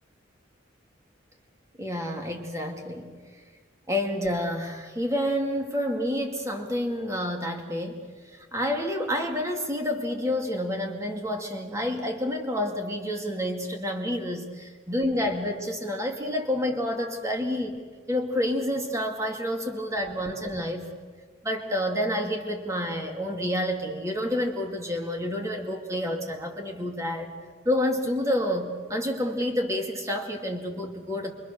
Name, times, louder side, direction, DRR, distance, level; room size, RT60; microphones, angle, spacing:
voice 1, 1.8-3.1 3.9-8.0 8.3-17.8 18.1-20.9 21.4-27.3 27.6-31.3, left 1 dB, 15° right, 3 dB, 2.2 m, -29 dB
28.5 x 24.0 x 6.6 m, 1.5 s
head